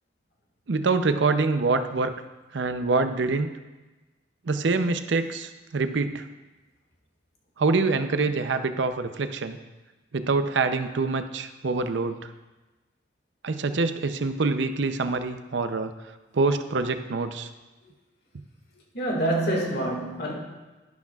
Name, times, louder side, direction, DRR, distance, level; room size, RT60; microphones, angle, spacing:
voice 1, 0.7-2.1 2.5-3.5 4.4-6.3 7.6-9.6 10.1-12.3 13.4-15.9 16.3-17.5, right 3 dB, 75° right, 9 dB, 0.6 m, -25 dB
voice 2, 18.9-20.3, right 1 dB, 60° left, -1 dB, 2.0 m, -26 dB
11.5 x 11.5 x 2.4 m, 1.2 s
head